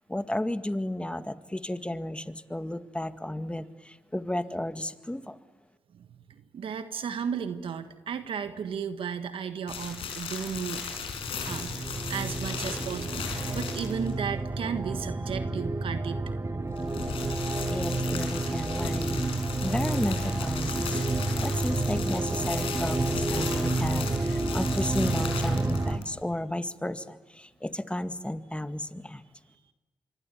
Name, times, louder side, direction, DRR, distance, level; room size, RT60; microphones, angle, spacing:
voice 1, 0.1-5.3 17.7-19.1 19.6-20.9 21.4-24.1 24.5-29.2, left 1 dB, 10° left, 9 dB, 2.0 m, -33 dB
voice 2, 5.9-10.9 11.4-16.2 23.3-23.8 24.1-24.3, right 7 dB, 75° right, 9 dB, 1.5 m, -35 dB
sound 1, 9.7-14.2 16.6-26.2, left 6 dB, 85° left, 5.3 m, -37 dB
sound 2, 10.9-26.0, right 2 dB, 30° right, 2.4 m, -30 dB
26.0 x 24.0 x 9.3 m, 1.2 s
supercardioid pair, 40°, 9 cm